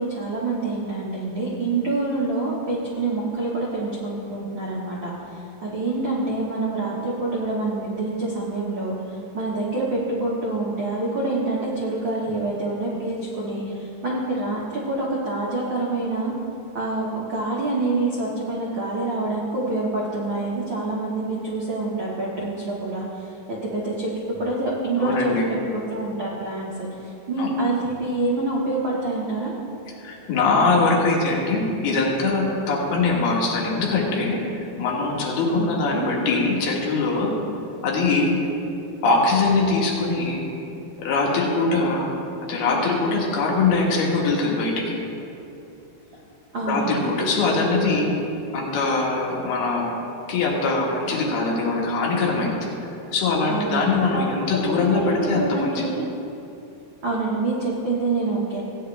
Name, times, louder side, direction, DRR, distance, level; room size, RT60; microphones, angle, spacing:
voice 1, 0.0-16.3 16.7-25.3 25.7-29.5 35.5-36.1 46.5-47.1 53.5-54.3 54.7-56.1 57.0-58.6, right 2 dB, 65° right, -6 dB, 1.1 m, -26 dB
voice 2, 25.0-25.5 27.4-27.5 30.0-34.4 34.8-37.3 37.8-38.4 39.0-40.5 41.0-42.1 42.4-45.0 46.7-48.2 48.5-49.9 50.3-52.7 53.1-55.9, left 3 dB, 75° left, -2 dB, 3.4 m, -22 dB
16.5 x 9.4 x 3.4 m, 2.8 s
omnidirectional pair, 4.6 m